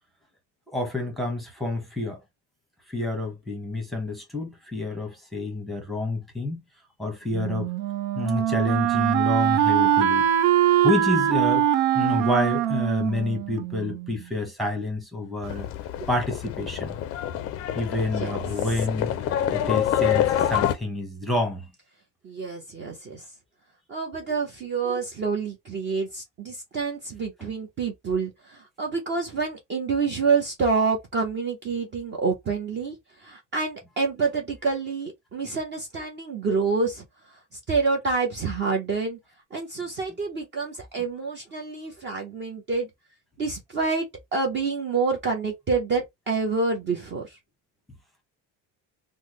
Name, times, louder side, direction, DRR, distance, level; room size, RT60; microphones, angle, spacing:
voice 1, 0.7-2.2 2.9-6.6 7.0-7.7 8.1-10.3 10.8-11.7 11.9-15.7 16.1-17.0 17.7-19.1 19.5-21.7 27.4-27.5, left 2 dB, ahead, 1.0 m, -28 dB
Wind instrument woodwind instrument, 7.3-14.2, right 12 dB, 85° right, 0.6 m, -23 dB
Livestock farm animals working animals, 15.4-20.8, left 11 dB, 40° left, 0.4 m, -26 dB
voice 2, 22.2-23.2 23.9-37.4 37.7-39.2 39.5-42.9 43.4-47.4, right 4 dB, 30° right, 0.7 m, -27 dB
3.5 x 2.1 x 3.0 m
cardioid pair, 150°, 36 cm